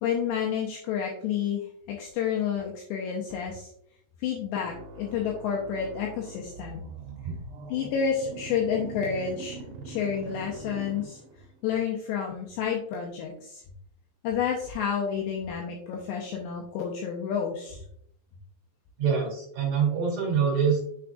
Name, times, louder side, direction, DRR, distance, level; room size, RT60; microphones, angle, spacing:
voice 1, 0.0-3.7 4.2-6.8 7.7-9.6 9.9-11.2 11.6-13.6 14.2-17.8, left 7 dB, 90° left, -1 dB, 2.5 m, -30 dB
sound 1, 4.6-11.6, right 3 dB, 75° right, 3.0 m, -43 dB
voice 2, 19.0-20.8, right 6 dB, 50° right, -2 dB, 3.3 m, -25 dB
7.0 x 6.1 x 2.4 m, 0.69 s
omnidirectional pair, 5.9 m